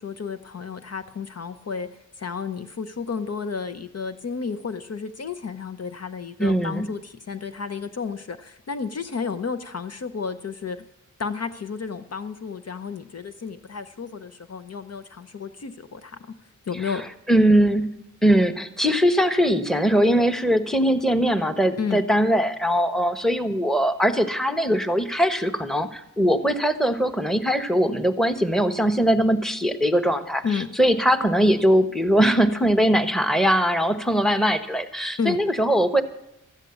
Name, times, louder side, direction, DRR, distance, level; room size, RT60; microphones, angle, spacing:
voice 1, 0.0-1.9 2.2-10.8 11.2-16.3 16.7-17.1 21.8-22.0 30.4-30.7 35.2-35.4, left 5 dB, 55° left, 10 dB, 0.7 m, -32 dB
voice 2, 6.4-6.9 17.3-17.9 18.2-36.0, equal, ahead, 10 dB, 1.1 m, -21 dB
13.5 x 8.2 x 8.3 m, 0.88 s
cardioid pair, 75°, 31 cm